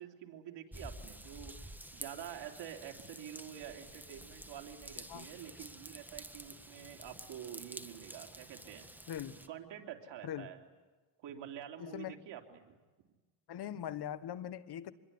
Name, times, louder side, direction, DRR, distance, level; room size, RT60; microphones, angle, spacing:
voice 1, 0.0-8.9 9.5-10.6 11.2-12.7, right 10 dB, 75° right, 3 dB, 3.2 m, -48 dB
Raindrop / Vehicle horn car horn honking / Trickle dribble, 0.7-9.5, right 1 dB, 5° right, 1.6 m, -50 dB
voice 2, 9.1-9.4 10.2-10.5 11.8-12.2 13.5-14.9, left 10 dB, 60° left, 14 dB, 1.5 m, -41 dB
26.0 x 22.0 x 9.7 m, 1.3 s
cardioid pair, 100°, 44 cm